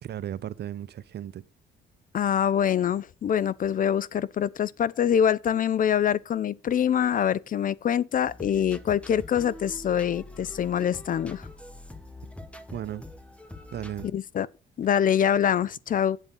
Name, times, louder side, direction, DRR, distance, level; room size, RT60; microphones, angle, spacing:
voice 1, 0.0-1.4 12.2-12.3 12.7-13.0 13.7-14.1, right 11 dB, 55° right, 0.7 m, -35 dB
voice 2, 2.1-11.5 14.1-14.5 14.8-16.2, left 9 dB, 45° left, 0.4 m, -25 dB
sound 1, 8.3-14.1, left 2 dB, 5° left, 1.1 m, -44 dB
8.0 x 7.1 x 5.4 m
cardioid pair, 90°, 20 cm